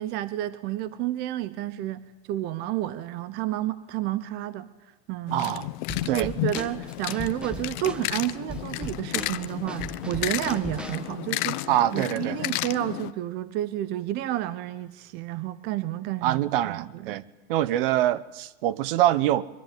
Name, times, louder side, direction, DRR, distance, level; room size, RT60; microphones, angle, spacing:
voice 1, 0.0-5.5 6.0-17.2, right 14 dB, 30° right, 16 dB, 0.9 m, -31 dB
sound 1, 5.3-13.1, left 19 dB, 40° left, 1.0 m, -32 dB
voice 2, 5.3-5.7 6.1-6.3 11.7-12.4 16.2-17.2 17.5-19.4, right 13 dB, 50° right, 19 dB, 1.2 m, -24 dB
Drum kit / Snare drum, 5.9-11.1, right 1 dB, 5° right, 1.2 m, -38 dB
26.0 x 23.5 x 9.4 m, 1.1 s
supercardioid pair, 170°, 34 cm